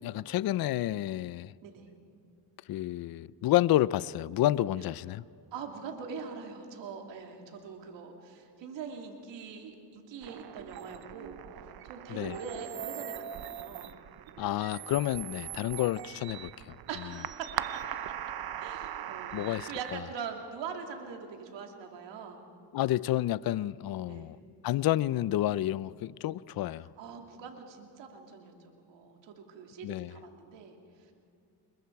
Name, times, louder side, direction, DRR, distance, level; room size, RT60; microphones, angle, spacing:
voice 1, 0.0-1.5 2.7-5.2 12.1-12.4 14.4-16.7 19.3-19.7 22.7-24.4 24.6-26.9 29.8-30.1, left 14 dB, 55° left, 0.5 m, -29 dB
voice 2, 5.5-11.4 11.8-13.9 16.9-18.1 18.6-19.4 19.7-22.4 24.1-24.4 27.0-31.1, right 6 dB, 90° right, 2.9 m, -43 dB
sound 1, 10.2-20.0, right 11 dB, 60° right, 0.8 m, -41 dB
29.5 x 22.0 x 4.7 m
cardioid pair, 95°, 43 cm